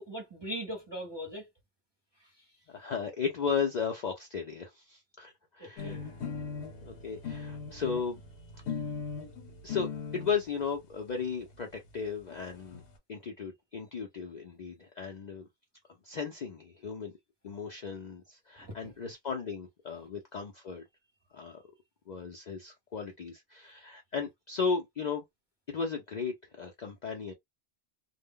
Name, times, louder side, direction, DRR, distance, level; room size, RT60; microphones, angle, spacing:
voice 1, 0.0-1.5 2.2-2.3 5.6-6.0 18.6-18.9, equal, 30° right, 0.6 m, -40 dB
voice 2, 2.7-6.1 6.8-8.2 9.6-12.8 13.1-15.5 16.0-17.1 17.4-20.8 21.3-21.6 22.1-25.2 25.7-27.3, left 5 dB, 55° left, 0.5 m, -35 dB
sound 1, 5.8-10.4 11.2-11.3 11.5-11.6 11.9-12.0 12.2-12.8, left 5 dB, 75° left, 1.0 m, -39 dB
2.1 x 2.0 x 3.5 m
omnidirectional pair, 1.2 m